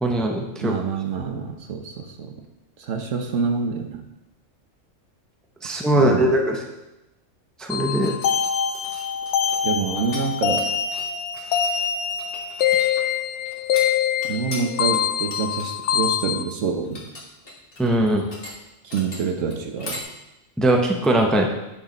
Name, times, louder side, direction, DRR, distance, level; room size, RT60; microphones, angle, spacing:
voice 1, 0.0-0.8 5.6-6.6 7.6-8.1 17.8-18.2 20.6-21.5, right 1 dB, ahead, 1 dB, 0.7 m, -20 dB
voice 2, 0.6-2.4 2.8-4.0 6.0-6.3 9.6-10.7 14.3-17.1 18.8-20.0, right 5 dB, 75° right, 4 dB, 1.3 m, -27 dB
sound 1, 7.7-16.4, left 8 dB, 70° left, 0.9 m, -24 dB
sound 2, 7.8-10.2 10.5-20.0, left 1 dB, 45° left, 1.8 m, -39 dB
9.2 x 4.7 x 5.3 m, 0.94 s
omnidirectional pair, 1.3 m